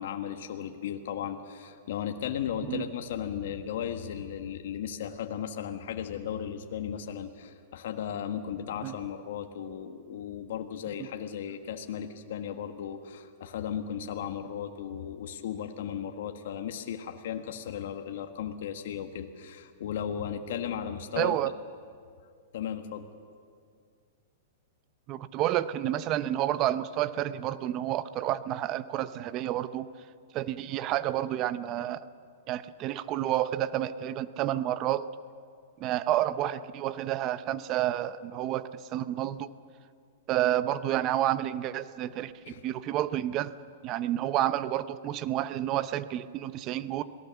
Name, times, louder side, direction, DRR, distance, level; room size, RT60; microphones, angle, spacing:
voice 1, 0.0-21.3 22.5-23.1 42.4-42.6, left 9 dB, 65° left, 6 dB, 1.5 m, -36 dB
voice 2, 21.2-21.5 25.1-29.9 30.3-32.0 32.5-35.1 35.8-39.5 40.3-42.3 42.6-43.6 43.8-47.0, right 13 dB, 35° right, 15 dB, 0.7 m, -30 dB
27.0 x 18.0 x 7.1 m, 2.2 s
hypercardioid pair, 145°, 0 cm